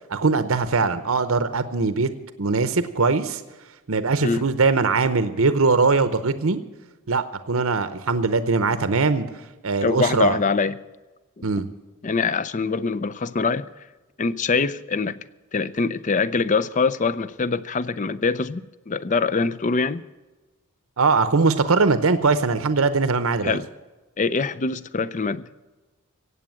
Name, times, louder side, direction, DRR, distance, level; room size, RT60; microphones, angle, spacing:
voice 1, 0.1-2.1 2.4-3.4 3.9-6.6 7.1-9.3 9.6-10.4 11.4-11.6 21.0-23.6, right 4 dB, 65° right, 11 dB, 0.8 m, -21 dB
voice 2, 9.8-10.8 12.0-13.7 14.2-15.2 15.5-20.0 23.4-23.7 24.2-25.4, left 4 dB, 35° left, 16 dB, 0.5 m, -24 dB
16.5 x 8.5 x 7.6 m, 1.2 s
head